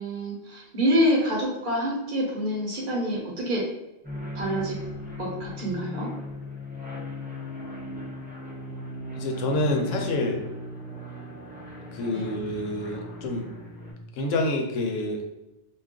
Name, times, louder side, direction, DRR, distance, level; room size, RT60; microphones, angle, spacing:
voice 1, 0.0-3.7 4.3-4.7 5.2-6.1 12.1-12.3, equal, 45° right, -3 dB, 0.9 m, -26 dB
sound 1, 4.0-13.9, left 1 dB, 10° right, 0.5 m, -37 dB
voice 2, 9.1-10.4 11.9-13.5 14.1-15.2, left 2 dB, 80° left, 2 dB, 0.9 m, -27 dB
2.4 x 2.3 x 3.5 m, 0.94 s
omnidirectional pair, 1.3 m